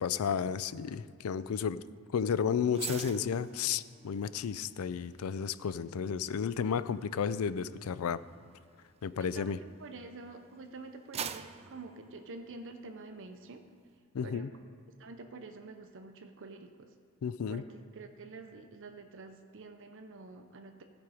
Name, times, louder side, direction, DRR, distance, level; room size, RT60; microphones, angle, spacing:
voice 1, 0.0-1.8 2.1-8.2 9.0-9.6 14.1-14.5 17.2-17.6, left 7 dB, 75° left, 15 dB, 0.4 m, -32 dB
sound 1, 2.7-10.1 10.6-13.0 13.3-13.5, right 8 dB, 30° right, 0.4 m, -47 dB
voice 2, 9.2-13.6 14.2-14.5 15.0-16.9 17.5-20.8, right 3 dB, 60° right, 6 dB, 0.7 m, -48 dB
15.5 x 5.3 x 4.9 m, 2.2 s
head